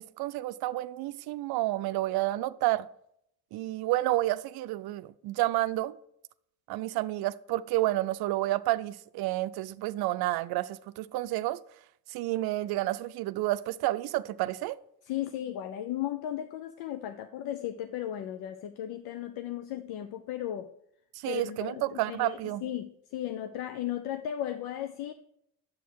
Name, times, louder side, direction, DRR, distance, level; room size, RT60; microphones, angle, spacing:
voice 1, 0.2-2.9 3.5-5.9 6.7-11.6 12.1-14.8 21.2-22.7, right 16 dB, 90° right, 0.5 m, -30 dB
voice 2, 15.0-20.7 21.3-25.1, left 11 dB, 90° left, 0.6 m, -36 dB
9.3 x 7.8 x 4.6 m
cardioid pair, 100°, 36 cm